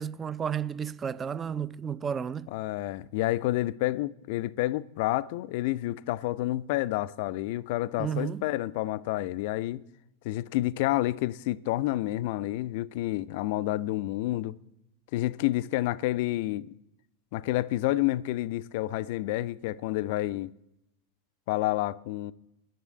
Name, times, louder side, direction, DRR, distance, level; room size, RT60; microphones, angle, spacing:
voice 1, 0.0-2.5 8.0-8.5, right 7 dB, 20° right, 0.4 m, -32 dB
voice 2, 2.5-9.8 10.2-14.6 15.1-16.7 17.3-20.5 21.5-22.3, left 16 dB, 50° left, 0.4 m, -29 dB
10.0 x 7.4 x 9.2 m
figure-of-eight pair, 90°, 0 cm